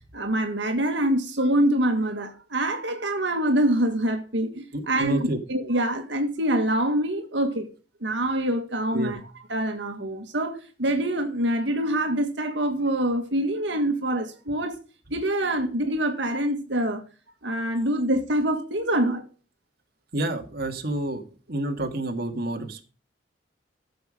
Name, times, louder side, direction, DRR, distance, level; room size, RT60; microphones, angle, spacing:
voice 1, 0.1-7.7 8.0-9.2 9.5-14.8 15.1-17.0 17.4-19.2, right 1 dB, 75° right, 2.0 m, -25 dB
voice 2, 4.7-5.4 8.9-9.1 20.1-21.2 21.5-22.8, right 1 dB, 55° right, 2.0 m, -29 dB
14.0 x 7.0 x 5.2 m
head